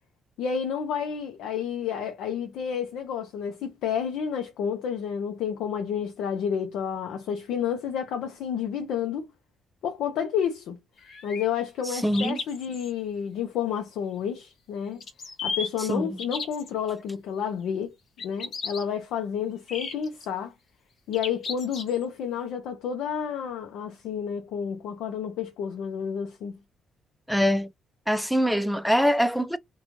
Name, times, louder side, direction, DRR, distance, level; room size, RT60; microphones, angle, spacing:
voice 1, 0.4-9.3 9.8-10.8 11.2-15.0 15.4-17.9 18.2-20.5 21.1-26.6, left 8 dB, 85° left, 0.6 m, -30 dB
sound 1, 11.0-11.5 12.1-12.9 15.0-15.7 16.2-16.7 18.2-18.8 19.7-20.3 21.1-22.0, left 4 dB, 60° left, 0.9 m, -34 dB
voice 2, 11.9-12.4 15.9-16.2 27.3-27.7 28.1-29.6, equal, ahead, 0.4 m, -23 dB
3.0 x 2.3 x 2.6 m
cardioid pair, 90°, 0 cm